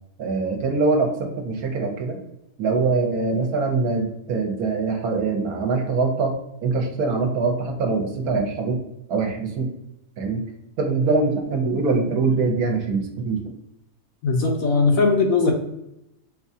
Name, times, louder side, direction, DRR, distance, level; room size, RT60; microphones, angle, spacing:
voice 1, 0.2-2.2 2.6-6.4 6.6-8.8 9.1-9.7 10.2-10.4 10.8-13.5, right 4 dB, 70° right, 2 dB, 1.1 m, -23 dB
voice 2, 14.2-15.5, left 4 dB, 65° left, 1 dB, 1.0 m, -19 dB
4.6 x 2.3 x 2.6 m, 0.84 s
omnidirectional pair, 1.7 m